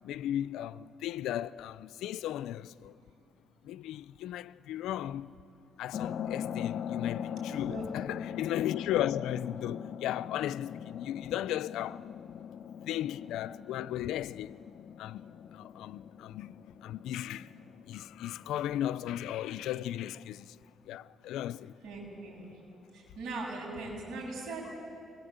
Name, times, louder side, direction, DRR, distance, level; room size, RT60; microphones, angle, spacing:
voice 1, 0.0-3.0 3.6-5.4 5.8-12.1 12.8-14.6 15.0-17.5 17.9-20.6 20.9-21.8, left 12 dB, 90° left, 0.5 m, -36 dB
sound 1, 5.9-19.2, left 8 dB, 70° left, 0.9 m, -41 dB
voice 2, 7.5-7.8 21.8-22.4 22.9-24.8, right 3 dB, 75° right, 7.8 m, -40 dB
24.0 x 20.5 x 8.0 m
cardioid pair, 90°, 0 cm